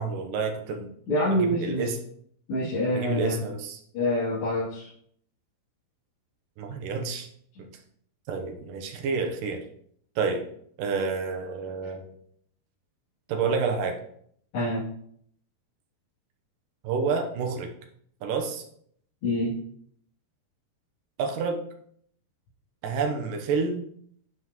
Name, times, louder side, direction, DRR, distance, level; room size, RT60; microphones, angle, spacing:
voice 1, 0.0-0.9 1.3-2.0 2.9-3.8 6.6-7.3 7.6-7.7 8.3-9.6 10.2-10.4 10.8-12.0 13.3-14.0 16.8-17.7 18.2-18.6 21.2-21.6 22.8-23.8, right 4 dB, 70° right, 3 dB, 2.2 m, -29 dB
voice 2, 1.1-1.9 2.5-3.4 3.9-4.9 14.5-14.8 19.2-19.5, left 1 dB, 70° left, -12 dB, 5.2 m, -26 dB
12.0 x 5.7 x 3.1 m, 0.65 s
omnidirectional pair, 4.9 m